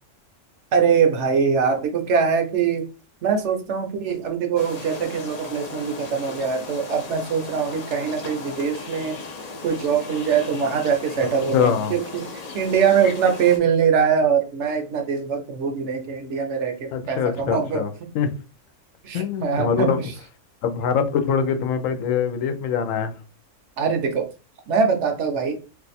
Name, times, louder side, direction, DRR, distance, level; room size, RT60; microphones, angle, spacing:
voice 1, 0.7-2.9 3.2-9.2 9.6-12.2 12.5-17.8 19.0-19.9 23.8-24.3 24.7-25.6, right 6 dB, 70° right, 6 dB, 0.9 m, -22 dB
sound 1, 4.6-13.6, left 3 dB, 55° left, 0.4 m, -36 dB
voice 2, 11.5-12.0 16.9-18.3 19.1-20.0 20.6-23.2, left 7 dB, 85° left, 7 dB, 1.0 m, -23 dB
2.5 x 2.3 x 4.0 m, 0.33 s
omnidirectional pair, 1.3 m